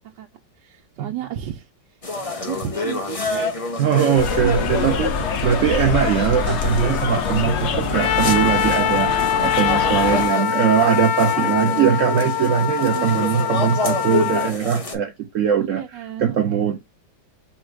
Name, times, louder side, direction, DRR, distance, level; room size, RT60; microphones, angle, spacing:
voice 1, 0.6-1.7 2.3-3.2 4.4-5.3 10.0-10.7 11.4-12.0 12.8-13.3 15.6-16.8, right 12 dB, 85° right, 1.3 m, -32 dB
sound 1, 2.0-14.9, left 3 dB, 30° left, 0.6 m, -29 dB
voice 2, 3.8-5.1 5.4-16.8, right 8 dB, 65° right, 0.8 m, -21 dB
sound 2, 4.1-10.3, left 6 dB, 65° left, 0.7 m, -25 dB
Trumpet, 7.9-14.5, left 8 dB, 85° left, 1.4 m, -23 dB
4.3 x 2.4 x 4.3 m
omnidirectional pair, 1.9 m